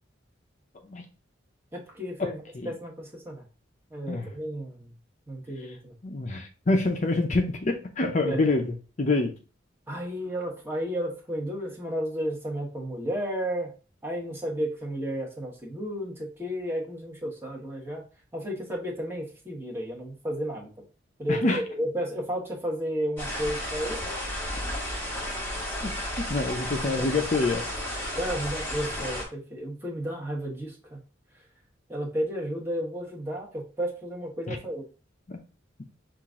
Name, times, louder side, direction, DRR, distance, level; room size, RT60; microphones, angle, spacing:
voice 1, 1.7-3.4 3.9-4.9 5.3-5.9 8.2-8.4 9.9-13.7 14.0-18.0 18.3-20.8 21.2-24.0 26.6-27.2 28.1-31.0 31.9-34.8, equal, 15° right, -2 dB, 1.2 m, -33 dB
voice 2, 6.0-8.7 9.0-9.3 21.3-21.6 25.8-27.6 34.5-34.6 35.3-35.4, left 2 dB, 40° left, 4 dB, 0.6 m, -26 dB
sound 1, 23.2-29.2, equal, 15° left, 1.5 m, -33 dB
5.8 x 2.5 x 3.6 m, 0.35 s
head